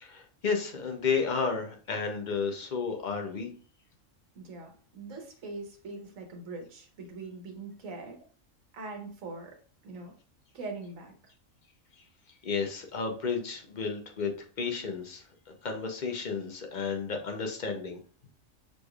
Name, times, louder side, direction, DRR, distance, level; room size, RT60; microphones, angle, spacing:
voice 1, 0.0-3.5 12.4-18.0, left 5 dB, 45° left, 4 dB, 0.7 m, -32 dB
voice 2, 4.3-8.2 8.7-9.5 9.8-10.1 10.5-11.1, right 3 dB, 85° right, 2 dB, 1.4 m, -42 dB
6.2 x 3.3 x 2.4 m, 0.43 s
omnidirectional pair, 1.3 m